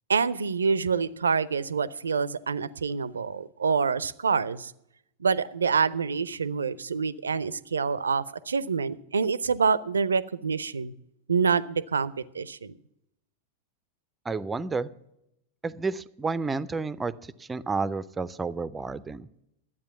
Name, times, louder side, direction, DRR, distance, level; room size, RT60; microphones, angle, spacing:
voice 1, 0.1-4.7 5.2-10.9 11.3-12.7, right 5 dB, 70° right, 19 dB, 0.5 m, -26 dB
voice 2, 14.3-14.9 15.6-17.1 17.4-19.3, right 4 dB, 15° right, 16 dB, 0.5 m, -30 dB
12.0 x 8.6 x 7.1 m, 0.82 s
figure-of-eight pair, 90°, 0 cm